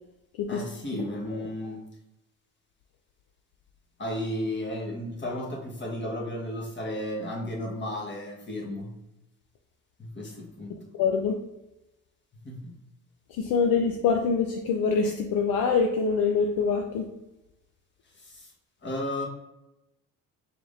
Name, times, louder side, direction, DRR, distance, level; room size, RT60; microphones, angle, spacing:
voice 1, 0.5-1.8 4.0-8.9 10.0-10.7 12.4-12.8 18.2-18.5 18.8-19.3, left 1 dB, 30° left, -1 dB, 1.4 m, -34 dB
voice 2, 10.9-11.4 13.3-17.1, left 5 dB, 60° left, 3 dB, 0.6 m, -25 dB
4.5 x 3.5 x 2.6 m, 0.94 s
hypercardioid pair, 55°, 40 cm